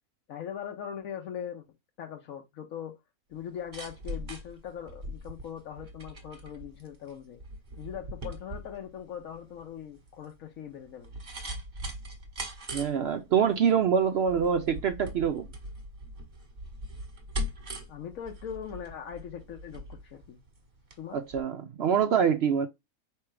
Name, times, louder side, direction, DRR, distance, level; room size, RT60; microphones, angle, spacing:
voice 1, 0.3-1.6 2.0-2.9 3.3-7.4 7.8-11.1 17.9-20.4 21.0-21.2, left 8 dB, 75° left, 1.1 m, -40 dB
sound 1, 3.4-21.0 21.3-21.4, equal, 35° right, 1.3 m, -41 dB
voice 2, 12.7-15.5 21.1-22.7, right 7 dB, 65° right, 0.6 m, -25 dB
4.6 x 3.3 x 3.2 m
omnidirectional pair, 1.5 m